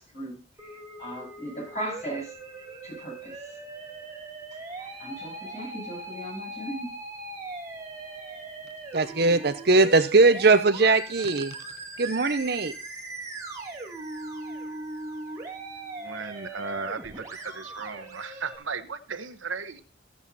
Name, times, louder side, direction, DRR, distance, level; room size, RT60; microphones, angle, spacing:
voice 1, 0.0-2.3 2.8-3.6 4.5-6.9, right 1 dB, 35° left, -3 dB, 7.9 m, -38 dB
Musical instrument, 0.6-18.6, right 2 dB, 15° right, 2.5 m, -40 dB
voice 2, 8.9-11.5 12.0-12.7, right 3 dB, 55° right, 10 dB, 0.8 m, -20 dB
voice 3, 16.0-19.8, right 4 dB, 80° right, 9 dB, 1.1 m, -35 dB
15.0 x 8.2 x 4.2 m, 0.32 s
head